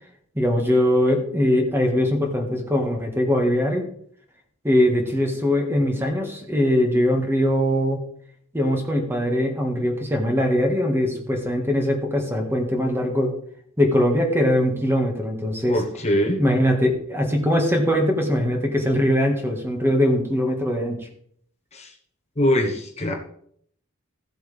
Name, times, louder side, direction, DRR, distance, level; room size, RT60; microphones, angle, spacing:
voice 1, 0.3-3.9 4.6-8.0 8.5-13.3 13.8-15.8 16.4-21.0, equal, 10° right, 2 dB, 1.7 m, -21 dB
voice 2, 15.7-16.4 21.7-21.9 22.4-23.1, equal, 30° left, 2 dB, 1.3 m, -22 dB
15.5 x 7.8 x 3.5 m, 0.65 s
head